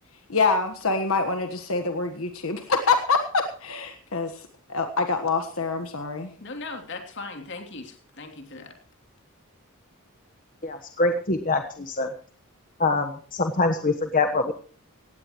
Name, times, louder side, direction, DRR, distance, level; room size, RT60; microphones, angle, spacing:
voice 1, 0.3-6.3, left 4 dB, 70° left, 6 dB, 1.4 m, -25 dB
voice 2, 6.3-8.8, left 3 dB, 55° left, 4 dB, 3.0 m, -38 dB
voice 3, 10.6-12.1 12.8-14.5, left 3 dB, 40° left, 5 dB, 1.2 m, -24 dB
18.0 x 16.0 x 3.1 m, 0.43 s
head